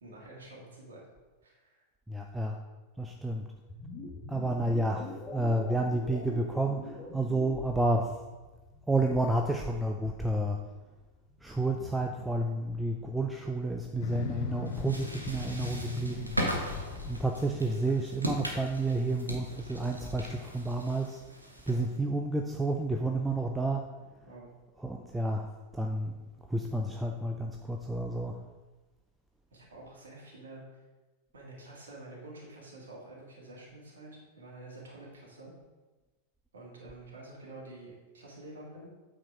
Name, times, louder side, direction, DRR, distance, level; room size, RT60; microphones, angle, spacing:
voice 1, 0.0-1.0 1.4-1.8 24.3-24.5 29.5-30.6 31.3-35.5 36.5-38.9, right 2 dB, 65° right, -3 dB, 2.4 m, -48 dB
voice 2, 2.1-2.6 3.0-3.5 4.3-8.2 8.9-10.6 11.4-16.3 17.0-21.2 21.7-23.9 24.8-25.5 25.7-26.2 26.5-28.4, right 2 dB, 5° right, 2 dB, 0.5 m, -30 dB
sound 1, 3.7-13.8 15.1-17.2, left 3 dB, 20° left, 1.8 m, -46 dB
Motorcycle, 14.0-19.2, left 8 dB, 50° left, 0.6 m, -42 dB
sound 2, 14.7-22.0, equal, 85° right, 1.2 m, -38 dB
8.7 x 4.5 x 4.9 m, 1.2 s
figure-of-eight pair, 90°, 0 cm